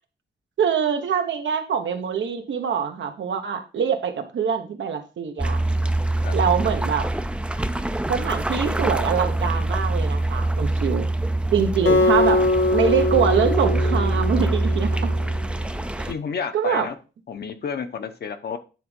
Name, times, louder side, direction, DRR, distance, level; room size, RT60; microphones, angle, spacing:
voice 1, 0.6-5.6 6.3-7.1 8.1-11.1 11.5-12.4 12.7-15.1 16.0-16.1 16.5-16.9, right 7 dB, 85° right, 6 dB, 1.1 m, -24 dB
sound 1, 5.4-16.1, right 2 dB, 5° right, 0.4 m, -24 dB
Acoustic guitar, 11.9-15.1, left 2 dB, 85° left, 1.3 m, -22 dB
voice 2, 16.1-16.9 17.3-18.6, left 6 dB, 60° left, 8 dB, 0.9 m, -31 dB
9.2 x 3.6 x 5.2 m, 0.33 s
wide cardioid pair, 145°, 19 cm